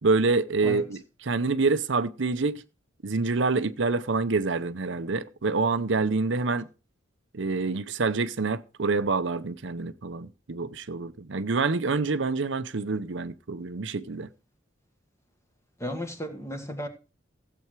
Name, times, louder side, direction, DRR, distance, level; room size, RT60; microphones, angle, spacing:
voice 1, 0.0-2.6 3.0-6.7 7.3-14.3, right 3 dB, 65° right, 0.7 m, -27 dB
voice 2, 15.8-16.9, equal, 15° left, 1.8 m, -34 dB
15.5 x 7.9 x 4.8 m
head